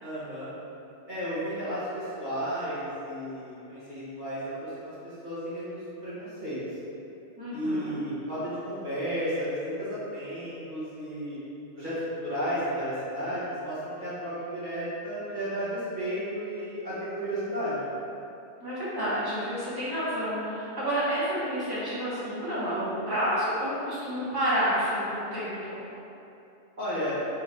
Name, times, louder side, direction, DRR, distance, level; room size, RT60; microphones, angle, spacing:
voice 1, 0.0-0.5 1.1-6.6 7.5-11.4 11.7-17.9 26.8-27.1, equal, 45° right, -12 dB, 1.4 m, -33 dB
voice 2, 7.4-8.0 18.6-25.8, equal, 20° right, -10 dB, 1.0 m, -29 dB
3.5 x 3.5 x 3.1 m, 2.9 s
omnidirectional pair, 1.2 m